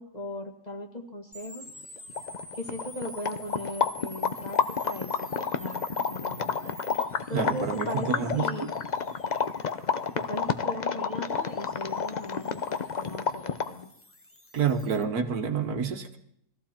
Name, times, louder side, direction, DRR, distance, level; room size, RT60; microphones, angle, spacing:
voice 1, 0.0-1.7 2.6-4.6 4.8-6.7 7.3-8.7 10.1-12.6 13.0-13.9, left 1 dB, 25° left, 3 dB, 1.8 m, -38 dB
sound 1, 1.3-15.0, left 1 dB, 10° left, 1.0 m, -48 dB
sound 2, 1.8-1.9 2.1-13.8, left 6 dB, 45° left, 0.6 m, -30 dB
voice 2, 7.3-8.7 14.5-16.2, right 6 dB, 75° right, 6 dB, 1.8 m, -28 dB
21.0 x 15.0 x 4.4 m, 0.69 s
omnidirectional pair, 1.6 m